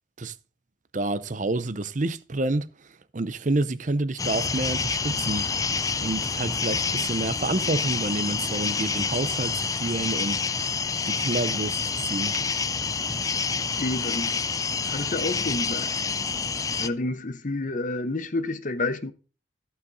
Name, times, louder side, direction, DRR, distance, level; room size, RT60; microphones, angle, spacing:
voice 1, 0.9-2.7 3.1-5.5 6.0-10.4 11.0-12.4, right 2 dB, 40° right, 0.6 m, -28 dB
sound 1, 4.2-16.9, left 5 dB, 20° left, 0.4 m, -28 dB
voice 2, 13.8-14.4 14.8-15.9 16.8-19.1, left 2 dB, 40° left, 0.8 m, -29 dB
14.0 x 5.8 x 3.9 m
head